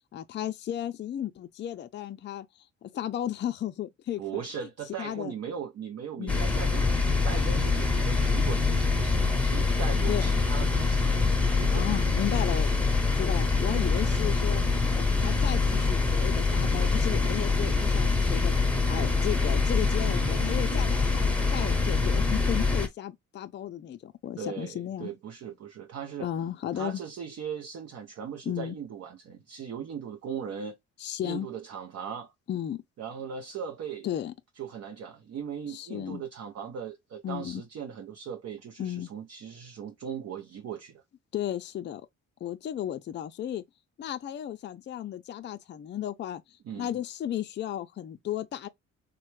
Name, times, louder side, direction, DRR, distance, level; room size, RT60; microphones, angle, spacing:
voice 1, 0.1-2.5 2.8-4.4 5.0-5.3 6.2-6.5 10.1-10.3 11.7-12.7 13.1-14.6 14.9-18.5 18.9-25.1 26.2-27.0 28.5-28.8 31.0-31.5 32.5-32.8 34.0-34.3 35.7-36.2 37.2-37.6 38.8-39.1 41.3-42.0 42.4-43.6 44.0-48.7, left 11 dB, 40° left, 0.4 m, -34 dB
voice 2, 4.2-7.0 7.2-12.2 24.4-26.3 26.7-30.8 31.2-32.3 33.0-34.1 34.6-41.0 46.7-46.9, right 7 dB, 55° right, 0.6 m, -39 dB
sound 1, 6.3-22.9, left 4 dB, 5° left, 0.8 m, -25 dB
3.3 x 2.1 x 3.1 m
cardioid pair, 90°, 30 cm